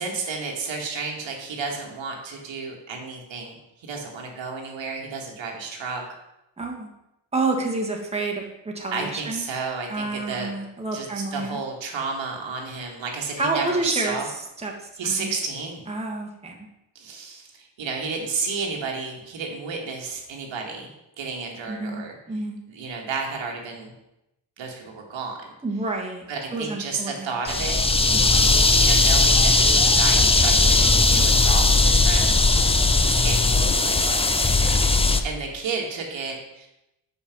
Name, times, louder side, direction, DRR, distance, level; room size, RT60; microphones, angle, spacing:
voice 1, 0.0-6.2 8.9-10.5 10.9-14.3 15.0-15.8 17.0-20.9 21.2-22.2 22.7-23.9 24.6-25.4 26.3-27.8 28.7-36.7, right 4 dB, 90° right, 1 dB, 1.8 m, -32 dB
voice 2, 6.6-6.9 7.3-9.4 9.9-11.6 13.4-14.2 14.6-14.8 15.0-15.3 15.9-16.6 21.7-22.6 25.6-27.3 27.6-27.7 28.1-28.4, right 3 dB, 15° right, 0 dB, 1.4 m, -29 dB
sound 1, 27.5-35.2, left 3 dB, 15° left, 0.5 m, -18 dB
6.3 x 5.7 x 6.0 m, 0.88 s
cardioid pair, 105°, 44 cm